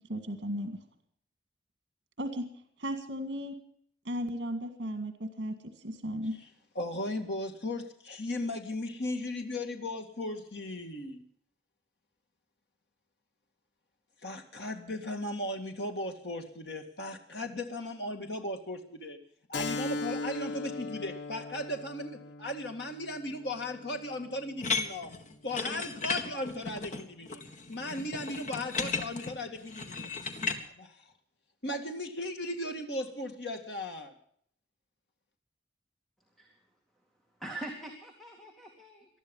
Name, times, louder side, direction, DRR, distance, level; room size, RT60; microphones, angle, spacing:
voice 1, 0.1-0.8 2.2-2.5 2.8-3.6 4.0-6.4, equal, 70° right, 7 dB, 2.0 m, -35 dB
voice 2, 6.8-11.2 14.2-19.2 19.5-25.1 25.4-27.4 27.7-30.1 30.8-31.0 31.6-34.1, left 1 dB, 65° left, 4 dB, 2.1 m, -37 dB
Keyboard (musical), 19.5-24.7, left 3 dB, 85° left, 1.1 m, -39 dB
sound 1, 24.6-30.6, left 4 dB, 45° left, 1.7 m, -35 dB
voice 3, 37.4-39.2, right 1 dB, ahead, 1 dB, 2.4 m, -43 dB
20.0 x 13.0 x 5.4 m, 0.64 s
head